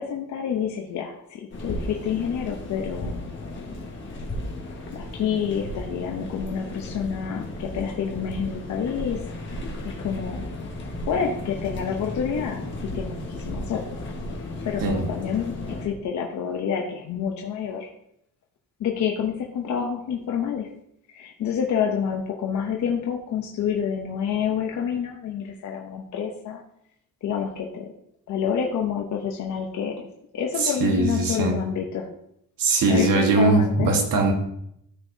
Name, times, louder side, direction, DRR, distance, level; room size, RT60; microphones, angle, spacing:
voice 1, 0.0-3.2 4.9-9.3 9.8-10.5 11.1-13.9 14.6-17.9 18.8-20.7 21.1-26.6 27.2-27.9 28.3-30.1 30.3-32.1 32.9-33.9, left 7 dB, 60° left, 1 dB, 0.8 m, -28 dB
sound 1, 1.5-15.9, left 1 dB, 35° left, 1.5 m, -34 dB
voice 2, 30.6-31.6 32.6-34.3, right 3 dB, 75° right, 2 dB, 1.5 m, -21 dB
13.5 x 4.6 x 2.7 m, 0.76 s
cardioid pair, 170°, 33 cm